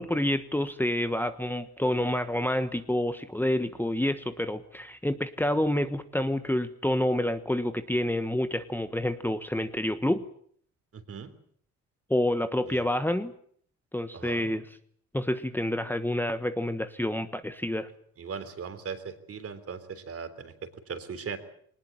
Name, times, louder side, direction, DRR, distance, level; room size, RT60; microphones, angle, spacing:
voice 1, 0.0-10.2 12.1-13.3 13.9-14.6 15.1-17.9, left 1 dB, 5° left, 10 dB, 1.3 m, -28 dB
voice 2, 10.9-11.3 12.6-12.9 14.1-14.5 18.2-21.4, right 6 dB, 50° right, 10 dB, 3.6 m, -39 dB
20.5 x 19.5 x 8.8 m, 0.62 s
cardioid pair, 90°, 30 cm